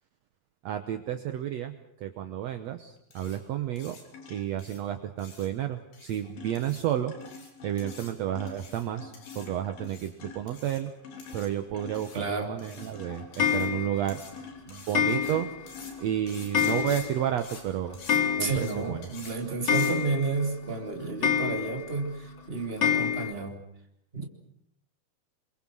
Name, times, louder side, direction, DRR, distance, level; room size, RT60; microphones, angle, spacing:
voice 1, 0.6-4.0 4.3-7.2 7.6-10.9 11.3-14.2 14.7-15.5 16.0-18.0 18.4-19.1, right 11 dB, 70° right, 7 dB, 1.6 m, -31 dB
sound 1, 3.1-3.4 3.8-4.0 4.6-4.8 5.2-5.5 5.9-6.2 6.6-6.8 7.2-7.5 7.8-8.1 8.5-8.8 9.1-9.5 9.8-10.1 10.5-10.8 11.2-11.5 11.9-12.2 12.6-12.9 13.3-13.7 14.1-14.3 14.7-15.3 15.7-15.9 16.3-17.0 17.4-17.6 17.9-18.2 18.5-18.7 19.0-19.3 19.7-19.9, left 5 dB, 85° left, 5.9 m, -47 dB
sound 2, 4.1-4.8 5.8-6.0 6.2-17.6, left 5 dB, 65° left, 5.1 m, -47 dB
voice 2, 12.1-12.5 18.4-23.6 24.1-24.3, right 4 dB, 15° right, 3 dB, 2.8 m, -31 dB
Clock, 13.4-14.1 14.9-15.7 16.0-16.1 16.5-17.3 17.6-17.7 17.9-18.9 19.2-19.3 19.7-20.5 21.2-21.9 22.8-23.3, left 7 dB, 40° left, 2.4 m, -27 dB
28.0 x 23.0 x 6.3 m, 0.75 s
omnidirectional pair, 4.4 m